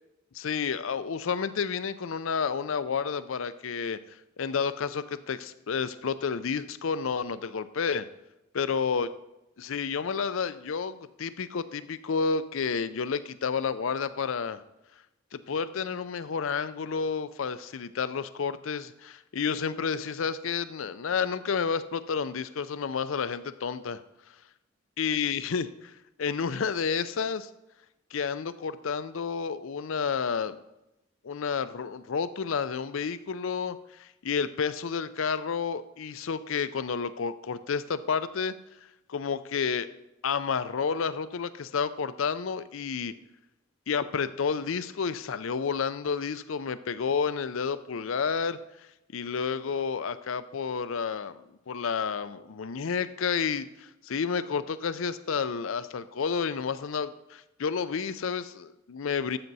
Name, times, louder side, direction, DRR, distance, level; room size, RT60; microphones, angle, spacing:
voice 1, 0.3-4.0 4.4-8.1 8.5-9.1 9.6-14.6 15.3-24.0 25.0-25.7 26.2-27.5 28.1-30.6 31.2-38.5 39.1-39.9 40.2-43.1 43.9-48.6 49.1-51.4 51.7-59.4, left 6 dB, 75° left, 14 dB, 0.5 m, -30 dB
12.0 x 7.8 x 4.1 m, 0.92 s
head